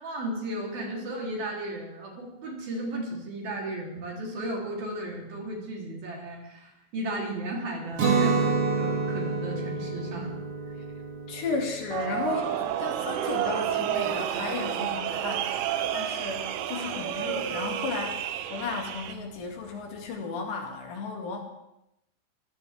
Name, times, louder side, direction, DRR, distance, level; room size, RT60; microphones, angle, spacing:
voice 1, 0.0-10.3, right 1 dB, 60° right, -2 dB, 5.2 m, -35 dB
Guitar, 8.0-13.8, right 4 dB, 40° right, 2.8 m, -29 dB
voice 2, 11.3-21.4, left 4 dB, 80° left, 1 dB, 4.8 m, -34 dB
sound 1, 11.9-19.1, right 10 dB, 90° right, 3.1 m, -30 dB
24.0 x 16.0 x 3.6 m, 0.86 s
omnidirectional pair, 4.9 m